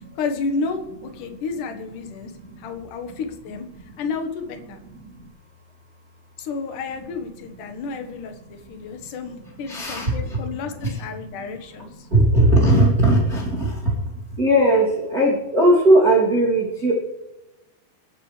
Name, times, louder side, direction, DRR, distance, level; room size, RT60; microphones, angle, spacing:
voice 1, 0.2-2.3 2.6-3.7 4.0-4.8 6.4-12.1, left 4 dB, 60° left, 6 dB, 2.5 m, -31 dB
voice 2, 9.6-10.4 10.8-11.0 12.1-13.9 14.4-16.9, right 1 dB, 25° right, -6 dB, 2.6 m, -18 dB
29.0 x 10.0 x 3.3 m, 0.99 s
omnidirectional pair, 4.9 m